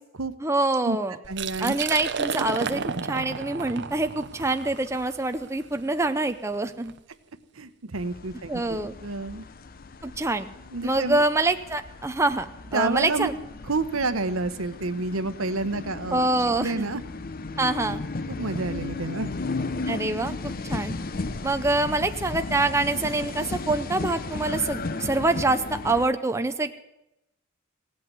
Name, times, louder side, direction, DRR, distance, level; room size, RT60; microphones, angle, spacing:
voice 1, 0.4-1.2 1.6-6.9 8.5-8.9 10.0-10.5 10.8-13.3 16.1-16.7 17.6-18.0 19.9-20.9 21.4-26.8, right 2 dB, 15° right, 8 dB, 0.6 m, -25 dB
Liquid, 1.2-7.0, right 5 dB, 55° right, 0.7 m, -33 dB
voice 2, 1.3-1.8 7.5-9.4 10.7-11.2 12.7-13.3 13.7-16.3 16.6-17.0 18.3-19.3, right 3 dB, 80° right, 12 dB, 1.0 m, -29 dB
sound 1, 7.9-26.1, left 3 dB, 45° left, 0.7 m, -35 dB
17.0 x 8.5 x 9.4 m, 0.90 s
head